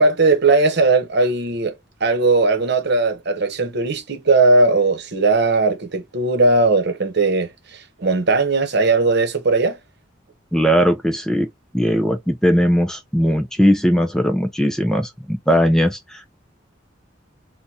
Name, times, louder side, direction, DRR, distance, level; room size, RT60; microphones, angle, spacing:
voice 1, 0.0-1.7 2.0-9.8, right 3 dB, 60° right, 0.9 m, -18 dB
voice 2, 10.5-11.5 11.7-16.3, equal, 5° left, 0.4 m, -18 dB
3.9 x 2.2 x 2.7 m
head